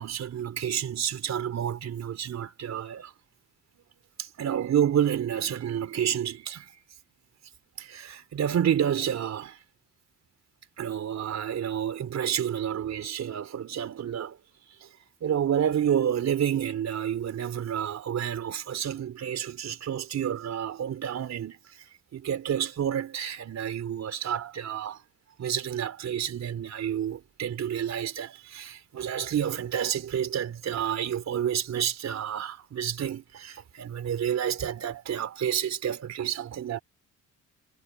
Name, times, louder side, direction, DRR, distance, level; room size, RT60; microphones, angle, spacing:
voice 1, 0.0-3.1 4.2-6.7 7.8-9.6 10.8-14.4 14.8-14.9 15.2-21.8 22.1-25.0 25.4-36.8, right 9 dB, 60° right, 3.8 m, -29 dB
cardioid pair, 90°, 30 cm